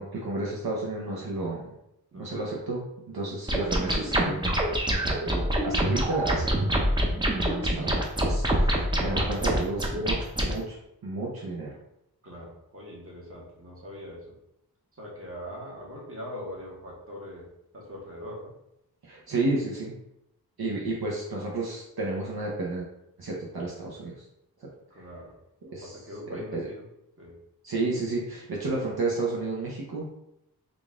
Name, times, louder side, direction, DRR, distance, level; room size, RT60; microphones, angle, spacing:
voice 1, 0.0-1.7 2.1-4.5 4.9-6.9 7.3-10.8 11.0-11.8 19.0-19.9 20.6-22.9 23.2-24.2 24.6-24.7 25.7-26.0 26.5-26.6 27.6-30.1, right 2 dB, 70° right, -4 dB, 0.8 m, -32 dB
voice 2, 2.1-2.7 12.2-14.4 14.9-17.5 17.7-18.5 24.9-25.4 25.8-26.8 27.2-27.4, equal, 35° right, -3 dB, 1.3 m, -42 dB
sound 1, 3.5-10.5, right 1 dB, 10° right, 0.6 m, -26 dB
3.7 x 2.5 x 3.5 m, 0.83 s
wide cardioid pair, 75°, 39 cm